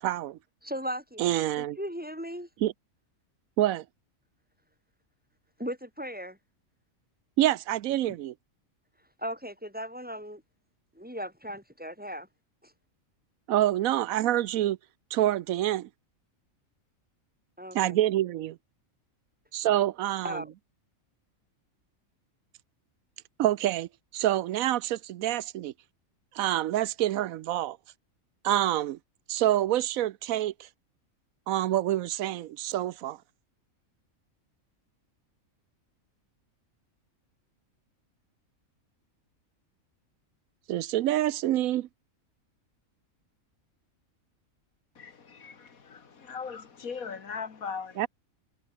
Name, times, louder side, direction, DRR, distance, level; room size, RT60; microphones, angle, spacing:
voice 1, 0.0-0.4 1.2-1.8 2.6-2.7 3.6-3.8 7.4-8.3 13.5-14.8 15.1-15.9 17.7-18.6 19.5-20.4 23.4-25.7 26.3-27.8 28.4-29.0 29.3-30.7 31.5-33.2 40.7-41.9 48.0-48.1, right 13 dB, 85° right, 1.0 m, -27 dB
voice 2, 0.6-2.5 5.6-6.4 9.2-10.4 10.9-12.3 12.6-12.7 17.6-18.0 20.2-20.5, equal, 5° right, 5.6 m, -37 dB
voice 3, 45.0-48.1, left 5 dB, 85° left, 2.3 m, -39 dB
omnidirectional pair, 1.4 m